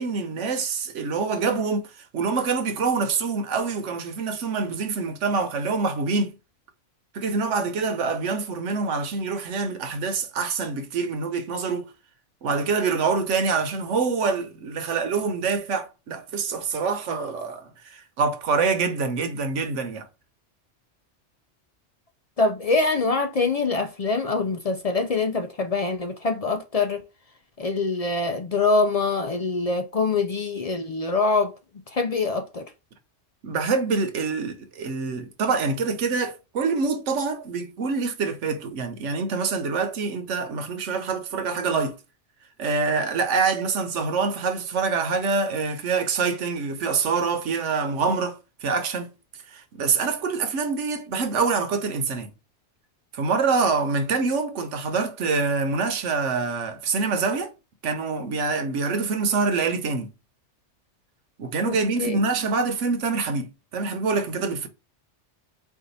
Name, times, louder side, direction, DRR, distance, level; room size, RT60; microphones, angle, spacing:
voice 1, 0.0-6.3 7.1-11.9 12.4-20.1 33.4-42.0 42.6-49.1 49.5-52.3 53.1-57.5 57.8-60.1 61.4-64.7, right 4 dB, 75° right, 1.1 m, -25 dB
voice 2, 22.4-27.0 27.6-31.5 31.9-32.7 61.6-62.2, left 3 dB, 60° left, 0.3 m, -24 dB
4.6 x 2.5 x 3.9 m
omnidirectional pair, 1.3 m